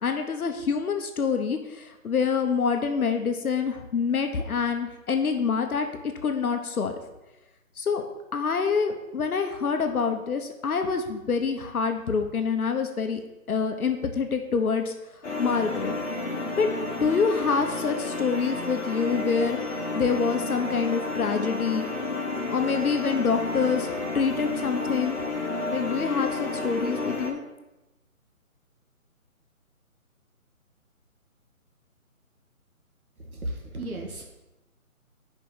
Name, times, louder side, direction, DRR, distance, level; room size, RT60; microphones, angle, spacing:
voice 1, 0.0-5.9 6.2-7.0 7.8-8.1 8.3-13.2 13.5-14.9 15.4-16.0 16.6-16.7 16.9-21.9 22.5-25.2 25.7-27.4, left 5 dB, 85° left, 5 dB, 1.0 m, -26 dB
sound 1, 15.2-27.3, left 3 dB, 55° left, 1.2 m, -31 dB
voice 2, 33.2-34.3, right 1 dB, 80° right, 1 dB, 1.6 m, -35 dB
5.4 x 5.3 x 6.1 m, 1.0 s
hypercardioid pair, 180°, 43 cm